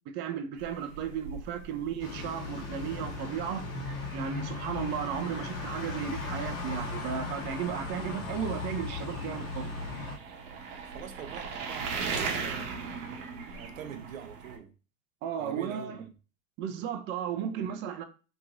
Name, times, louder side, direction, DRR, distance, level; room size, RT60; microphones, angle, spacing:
voice 1, 0.1-3.7 4.1-9.7 15.2-16.0 16.6-18.0, right 8 dB, 30° right, 0.4 m, -35 dB
sound 1, 0.6-14.6, right 5 dB, 50° right, 0.9 m, -40 dB
sound 2, 2.0-10.2, left 3 dB, 50° left, 1.4 m, -37 dB
voice 2, 10.8-14.7 15.4-16.1, right 8 dB, 85° right, 0.6 m, -45 dB
2.9 x 2.7 x 2.4 m
hypercardioid pair, 95°, 39 cm